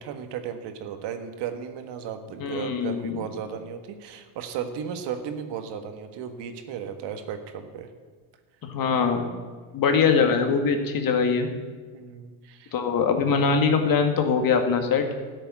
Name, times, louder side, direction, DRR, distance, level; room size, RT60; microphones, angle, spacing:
voice 1, 0.0-7.9 11.9-12.7, right 7 dB, 55° right, 7 dB, 1.6 m, -35 dB
voice 2, 2.4-3.2 8.6-9.3 9.7-11.5 12.7-15.0, left 5 dB, 45° left, 5 dB, 2.0 m, -22 dB
12.5 x 6.9 x 9.6 m, 1.4 s
supercardioid pair, 95°, 48 cm